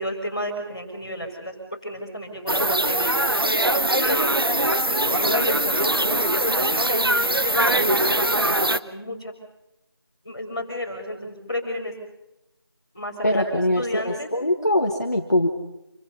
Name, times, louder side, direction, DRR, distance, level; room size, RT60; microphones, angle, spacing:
voice 1, 0.0-3.5 4.0-4.3 4.7-7.0 7.5-8.3 8.7-9.3 10.2-11.9 12.9-14.3, left 1 dB, 15° left, -8 dB, 4.1 m, -32 dB
sound 1, 2.5-8.8, right 1 dB, 65° right, 1.0 m, -21 dB
voice 2, 13.2-15.5, left 1 dB, 45° left, 2 dB, 1.6 m, -22 dB
26.5 x 25.0 x 5.6 m, 0.91 s
figure-of-eight pair, 175°, 13 cm